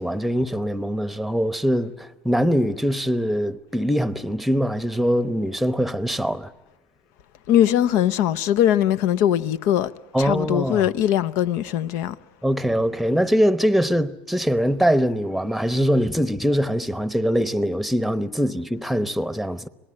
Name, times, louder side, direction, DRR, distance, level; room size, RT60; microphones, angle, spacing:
voice 1, 0.0-6.5 10.1-10.9 12.4-19.7, equal, ahead, 1.0 m, -22 dB
voice 2, 7.5-9.9 10.2-12.1, left 11 dB, 65° left, 0.8 m, -20 dB
26.5 x 18.5 x 8.8 m
supercardioid pair, 95°, 5 cm